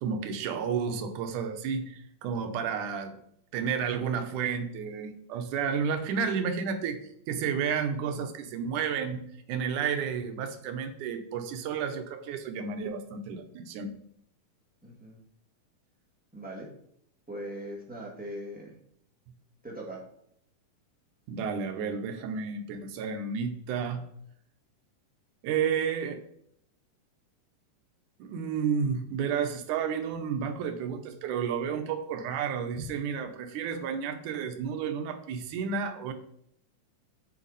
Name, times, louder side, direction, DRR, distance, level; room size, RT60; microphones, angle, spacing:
voice 1, 0.0-3.2 3.5-7.0 7.3-9.2 9.5-14.0 21.3-24.0 25.4-26.2 28.2-36.1, right 6 dB, 75° right, 7 dB, 2.3 m, -31 dB
voice 2, 14.8-15.2 16.3-16.7 17.3-18.8 19.6-20.0, right 1 dB, 5° right, -3 dB, 1.0 m, -40 dB
8.1 x 7.1 x 4.0 m, 0.70 s
omnidirectional pair, 3.8 m